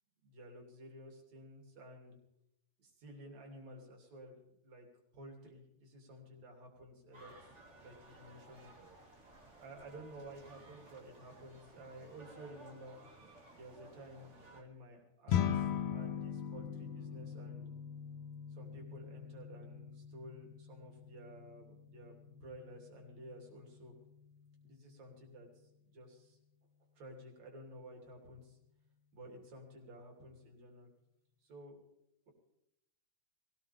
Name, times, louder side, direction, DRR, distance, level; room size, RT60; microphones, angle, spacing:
voice 1, 0.2-2.2 2.8-4.9 5.1-7.5 7.8-8.7 9.6-13.0 13.5-17.7 18.5-23.9 24.6-25.5 25.9-26.4 27.0-28.6 29.1-30.9 31.4-31.8, equal, 70° right, 1 dB, 4.4 m, -53 dB
sound 1, 7.1-14.6, right 2 dB, 25° right, 2.3 m, -58 dB
sound 2, 15.3-24.8, left 9 dB, 65° left, 1.6 m, -41 dB
22.0 x 18.0 x 3.6 m, 0.81 s
omnidirectional pair, 3.3 m